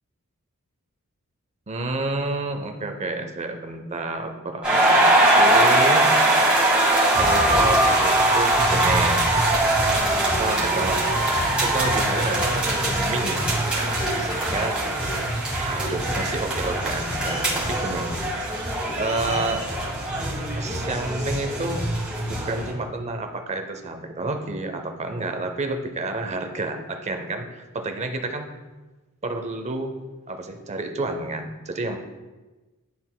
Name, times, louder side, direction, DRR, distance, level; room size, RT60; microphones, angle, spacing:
voice 1, 1.7-5.1 5.4-6.1 7.2-9.2 10.3-11.0 11.6-14.8 15.5-18.1 19.0-19.7 20.6-21.9 22.3-28.5 29.2-29.9 30.3-32.0, right 2 dB, 30° right, 6 dB, 0.6 m, -29 dB
sound 1, 4.6-22.7, right 1 dB, 5° right, 1.9 m, -21 dB
11.5 x 3.9 x 2.2 m, 1.2 s
head